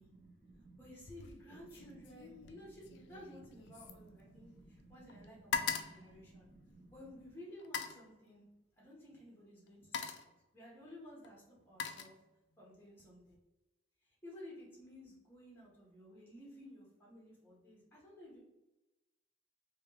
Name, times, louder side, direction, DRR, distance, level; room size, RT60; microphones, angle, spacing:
voice 1, 0.0-0.9 1.5-7.2, right 2 dB, 10° right, -11 dB, 0.8 m, -59 dB
voice 2, 0.8-6.5 6.9-8.4 8.8-12.1 12.6-13.4 14.0-18.4, left 1 dB, 10° left, -6 dB, 1.1 m, -55 dB
sound 1, 1.0-1.4 1.7-4.8 5.1-7.0 7.6-8.1 9.1-9.3 9.7-10.4 11.2-12.6 13.0-13.4, left 6 dB, 75° left, 0.3 m, -42 dB
3.3 x 2.4 x 3.0 m, 1.0 s
head